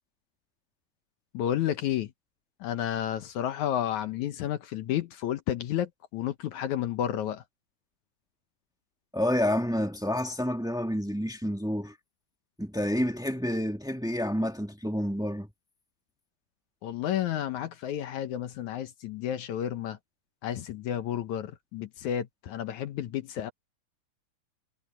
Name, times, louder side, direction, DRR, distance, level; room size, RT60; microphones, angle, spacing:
voice 1, 1.3-2.1 2.6-7.4 16.8-20.0 20.4-23.5, left 11 dB, 70° left, 2.1 m, -31 dB
voice 2, 9.1-11.9 12.6-15.5, equal, 5° right, 0.4 m, -29 dB
omnidirectional pair, 4.0 m